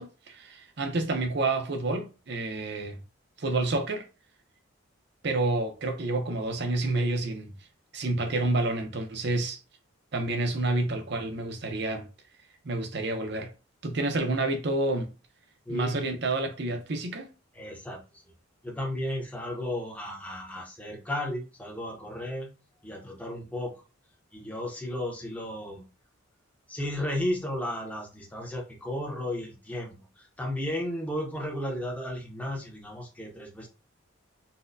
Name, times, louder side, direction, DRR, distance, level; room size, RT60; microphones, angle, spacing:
voice 1, 0.0-3.0 3.4-4.1 5.2-7.6 7.9-9.6 10.1-12.1 12.6-13.5 13.8-15.1 15.7-17.3, right 2 dB, 50° right, 0.6 m, -29 dB
voice 2, 15.7-16.0 17.5-18.2 18.6-23.7 24.3-25.9 26.7-33.7, left 1 dB, 5° left, 0.7 m, -34 dB
4.1 x 2.1 x 2.6 m
head